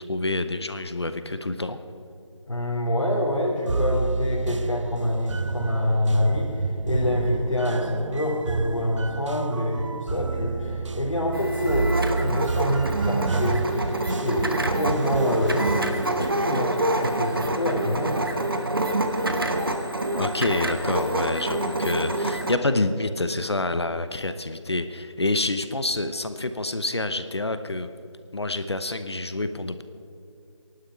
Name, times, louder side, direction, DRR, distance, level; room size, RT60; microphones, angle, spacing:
voice 1, 0.1-1.8 20.2-27.9 28.3-29.8, left 2 dB, 60° left, 10 dB, 0.9 m, -27 dB
voice 2, 2.5-18.2, left 1 dB, 75° left, -5 dB, 3.2 m, -26 dB
sound 1, 3.7-16.4, right 4 dB, 75° right, 0.4 m, -30 dB
sound 2, 11.3-22.5, right 1 dB, 45° right, 1.2 m, -27 dB
20.0 x 11.5 x 4.8 m, 2.5 s
figure-of-eight pair, 180°, 16 cm